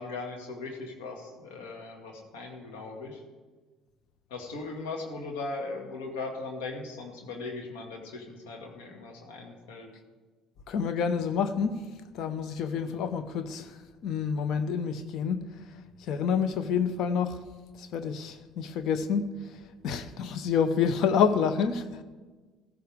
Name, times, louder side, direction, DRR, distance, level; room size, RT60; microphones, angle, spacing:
voice 1, 0.0-3.2 4.3-9.9, left 3 dB, 85° left, 2.2 m, -39 dB
voice 2, 10.7-17.4 17.8-22.0, left 6 dB, 65° left, 0.9 m, -29 dB
15.0 x 15.0 x 3.6 m
hypercardioid pair, 65°, 0 cm